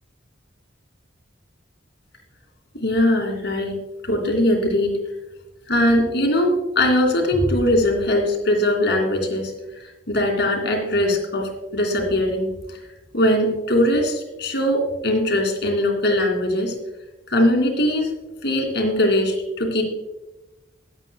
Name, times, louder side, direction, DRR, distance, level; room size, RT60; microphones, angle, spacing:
voice 1, 2.8-5.0 5.7-9.5 9.8-12.5 13.1-16.7 17.3-18.1 18.4-19.8, left 1 dB, 60° left, 1 dB, 2.6 m, -21 dB
24.0 x 8.2 x 2.3 m, 1.1 s
head